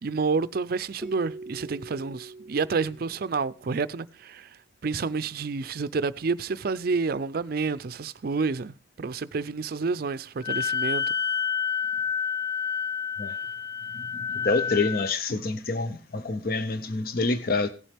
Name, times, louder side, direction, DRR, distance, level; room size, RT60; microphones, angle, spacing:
voice 1, 0.0-11.0, right 4 dB, 55° right, 0.4 m, -29 dB
Keyboard (musical), 1.0-3.8, right 3 dB, ahead, 0.9 m, -43 dB
Wind instrument woodwind instrument, 10.4-15.1, left 6 dB, 20° left, 0.4 m, -29 dB
voice 2, 14.3-17.7, left 3 dB, 50° left, 0.7 m, -27 dB
17.0 x 7.3 x 3.3 m
head